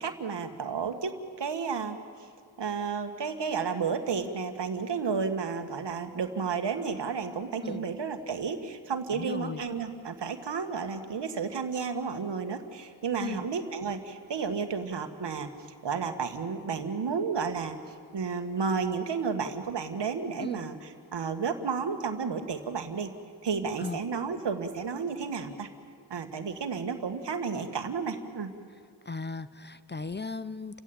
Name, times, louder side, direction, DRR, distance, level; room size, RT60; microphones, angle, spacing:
voice 1, 0.0-2.0 2.6-15.5 15.8-17.8 18.1-23.1 23.4-25.7 26.1-28.5, right 5 dB, 75° right, 7 dB, 1.9 m, -32 dB
voice 2, 9.1-9.6 13.2-13.5 20.4-20.6 23.8-24.0 29.1-30.8, left 4 dB, 25° left, 15 dB, 0.7 m, -37 dB
29.5 x 16.0 x 8.9 m, 2.3 s
wide cardioid pair, 85°, 42 cm